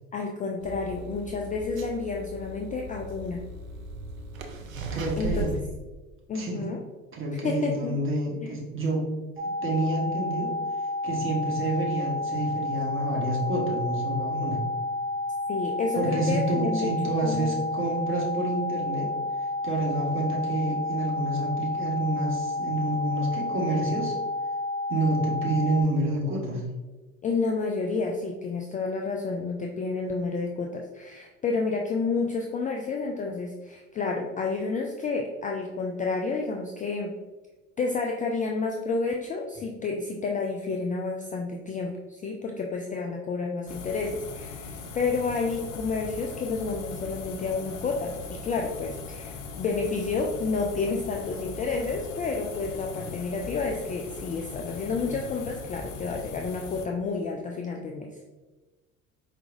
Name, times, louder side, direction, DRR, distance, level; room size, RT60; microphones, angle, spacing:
voice 1, 0.1-3.4 5.2-5.5 6.3-6.8 7.4-7.9 8.4-8.6 15.5-16.9 17.2-17.6 27.2-37.1 37.8-58.1, left 4 dB, 20° left, 1 dB, 0.3 m, -30 dB
sound 1, 0.6-5.6, right 2 dB, 90° right, 0.5 m, -37 dB
voice 2, 4.6-5.5 6.3-6.6 7.1-9.0 9.4-10.5 11.0-14.6 15.9-19.1 19.6-24.2 24.9-26.7, right 2 dB, 30° right, -1 dB, 1.3 m, -28 dB
sound 2, 9.4-25.8, left 2 dB, 15° right, 0.7 m, -30 dB
sound 3, 43.7-56.9, left 4 dB, 55° left, 0.7 m, -40 dB
4.6 x 3.3 x 2.5 m, 1.2 s
figure-of-eight pair, 60°, 39 cm